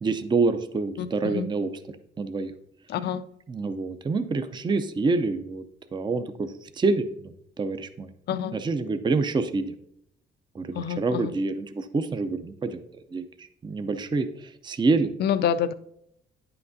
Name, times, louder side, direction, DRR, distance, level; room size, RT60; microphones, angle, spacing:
voice 1, 0.0-1.7 2.2-2.5 3.5-5.6 5.9-8.1 8.5-9.7 10.5-12.8 13.1-15.1, right 3 dB, 25° right, 0.5 m, -27 dB
voice 2, 1.0-1.5 2.9-3.2 8.3-8.6 10.7-11.3 15.2-15.7, left 8 dB, 55° left, 0.4 m, -27 dB
9.2 x 5.8 x 2.6 m
cardioid pair, 90°, 20 cm